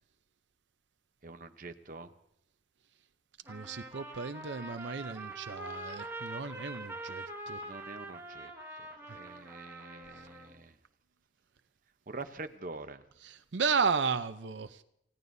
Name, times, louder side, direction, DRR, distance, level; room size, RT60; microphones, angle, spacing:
voice 1, 1.2-2.1 7.6-8.5 9.1-10.7 12.1-13.0, right 3 dB, 45° right, 8 dB, 0.8 m, -45 dB
Trumpet, 3.4-10.6, right 1 dB, 15° right, 1.7 m, -44 dB
voice 2, 3.5-7.6 13.2-14.8, right 5 dB, 85° right, 9 dB, 0.7 m, -34 dB
29.5 x 16.5 x 2.7 m, 0.75 s
head